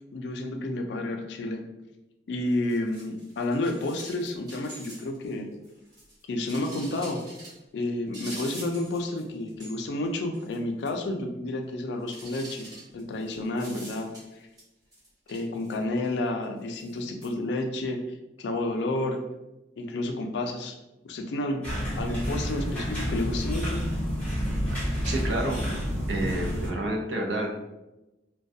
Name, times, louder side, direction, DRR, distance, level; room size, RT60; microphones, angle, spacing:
voice 1, 0.1-1.6 2.3-5.5 6.3-7.2 7.7-12.7 12.9-14.5 15.3-18.0 18.4-19.2 19.8-20.8 21.0-21.7 22.0-23.8, left 2 dB, 75° left, 4 dB, 0.4 m, -30 dB
sound 1, 2.5-5.3 5.6-7.6 8.1-9.2 9.5-10.1 10.3-10.6 10.8-10.9 12.1-14.6 14.9-16.1 16.7-17.3, right 1 dB, 20° right, 1.1 m, -45 dB
sound 2, 21.6-26.7, equal, 10° left, 0.8 m, -29 dB
voice 2, 25.0-25.6 26.1-27.6, right 1 dB, 80° right, 0 dB, 0.5 m, -29 dB
2.3 x 2.2 x 2.6 m, 0.99 s
head